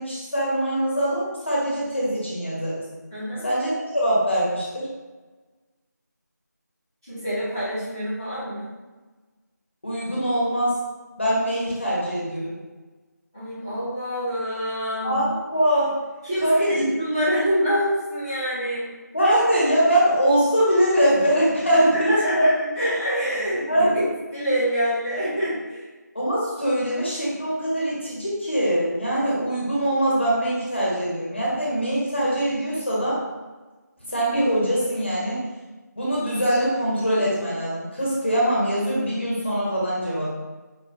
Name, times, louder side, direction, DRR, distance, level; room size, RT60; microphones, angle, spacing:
voice 1, 0.0-2.9 3.4-4.9 9.8-10.8 11.2-12.5 15.0-15.9 16.4-16.9 19.1-22.1 22.3-22.5 23.7-24.0 26.1-33.2 34.1-35.4 36.0-40.3, right 1 dB, 40° left, -7 dB, 1.1 m, -23 dB
voice 2, 3.1-3.4 7.0-8.7 13.3-15.2 16.2-18.8 21.7-24.0 24.3-25.8, equal, 10° right, -15 dB, 0.6 m, -26 dB
4.7 x 2.2 x 2.8 m, 1.2 s
figure-of-eight pair, 170°, 10 cm